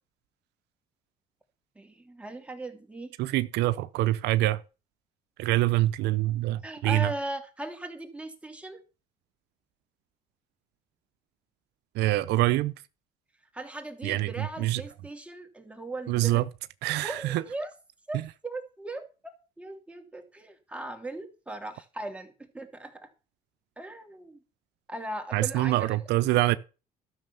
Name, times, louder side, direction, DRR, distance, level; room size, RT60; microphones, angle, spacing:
voice 1, 1.7-3.1 6.6-8.8 13.5-16.4 17.0-17.7 18.1-18.2 18.4-19.3 19.6-23.1 23.8-24.4 24.9-26.0, right 2 dB, 5° right, 2.8 m, -38 dB
voice 2, 3.2-4.6 5.4-7.1 11.9-12.7 14.0-14.8 16.1-16.4 16.8-17.4 25.3-26.6, right 16 dB, 85° right, 0.6 m, -25 dB
12.5 x 6.4 x 7.0 m
cardioid pair, 110°, 17 cm